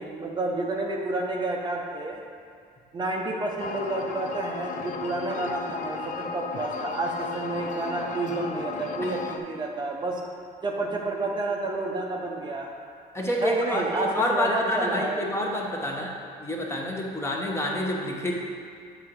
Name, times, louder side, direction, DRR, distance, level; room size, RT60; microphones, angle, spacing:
voice 1, 0.0-2.2 2.9-10.2 10.6-12.7 13.4-15.3, right 2 dB, 25° right, -1 dB, 0.6 m, -30 dB
sound 1, 3.6-9.4, left 5 dB, 50° left, 0.5 m, -35 dB
voice 2, 13.1-16.1 16.4-18.4, left 1 dB, 15° left, -1 dB, 0.9 m, -28 dB
8.2 x 3.8 x 4.6 m, 2.2 s
cardioid pair, 110°, 17 cm